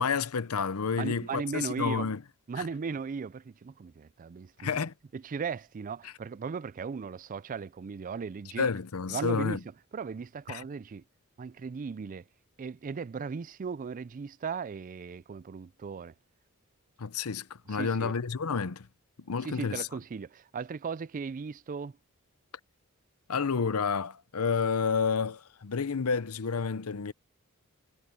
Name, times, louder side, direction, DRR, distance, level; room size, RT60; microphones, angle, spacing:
voice 1, 0.0-2.2 2.6-2.7 4.6-4.9 6.0-6.1 8.6-9.6 10.5-10.6 17.0-18.9 19.3-19.9 23.3-27.1, left 5 dB, 80° left, 0.7 m, -30 dB
voice 2, 1.0-2.1 2.5-4.8 5.1-8.7 9.1-9.6 9.9-11.0 11.4-12.2 12.6-16.1 17.7-18.1 19.4-21.9, right 5 dB, 40° right, 0.4 m, -37 dB
head